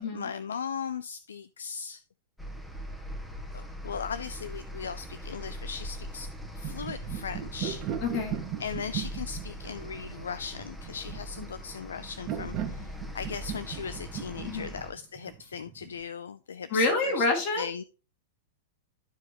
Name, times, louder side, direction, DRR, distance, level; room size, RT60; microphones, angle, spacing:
voice 1, 0.0-2.0 3.5-7.9 8.6-17.3 17.6-17.8, left 6 dB, 65° left, 0.3 m, -38 dB
sound 1, 2.4-14.9, equal, 5° left, 1.3 m, -41 dB
sound 2, 6.3-16.0, right 10 dB, 35° right, 1.3 m, -38 dB
voice 2, 8.0-8.4 14.5-14.8 16.7-17.7, left 3 dB, 45° left, 2.7 m, -27 dB
12.5 x 4.7 x 3.0 m
figure-of-eight pair, 95°, 0 cm